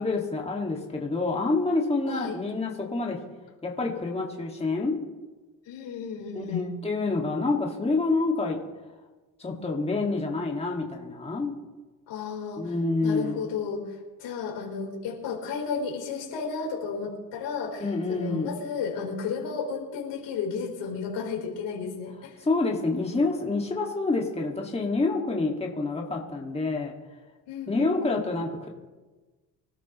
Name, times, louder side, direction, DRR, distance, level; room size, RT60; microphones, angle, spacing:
voice 1, 0.0-3.2 3.6-5.1 6.4-8.6 9.4-11.5 12.6-13.4 17.8-18.5 22.4-26.9 27.7-28.7, left 3 dB, 15° left, -1 dB, 2.0 m, -27 dB
voice 2, 2.1-2.4 5.7-6.6 12.1-12.7 13.0-22.4 27.5-28.3, left 5 dB, 85° left, -1 dB, 4.3 m, -33 dB
25.0 x 12.5 x 3.1 m, 1.3 s
cardioid pair, 110°, 42 cm